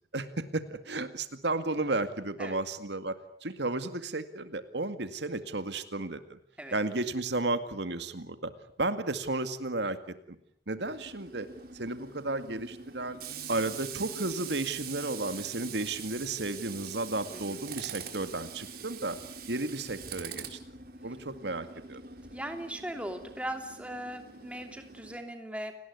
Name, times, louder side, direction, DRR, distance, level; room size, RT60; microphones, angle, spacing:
voice 1, 0.1-6.4 6.7-8.5 8.8-10.0 10.7-11.5 11.7-13.2 13.5-19.2 19.5-20.6 21.0-22.0, right 2 dB, 70° right, 10 dB, 2.1 m, -33 dB
Tools, 10.8-25.2, right 6 dB, 55° right, 4.4 m, -44 dB
voice 2, 22.3-25.7, right 1 dB, 5° right, 6 dB, 3.0 m, -39 dB
29.5 x 19.5 x 9.6 m, 0.65 s
head